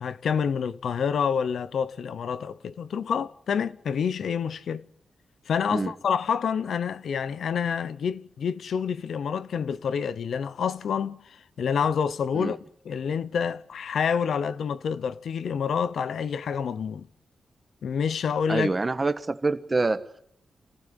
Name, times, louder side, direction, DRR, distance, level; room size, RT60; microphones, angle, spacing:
voice 1, 0.0-4.9 5.5-12.6 12.9-17.1 17.8-18.7, left 7 dB, 70° left, 0.9 m, -28 dB
voice 2, 18.5-20.2, right 3 dB, 20° right, 1.5 m, -26 dB
27.5 x 15.5 x 9.8 m
wide cardioid pair, 155°, 0 cm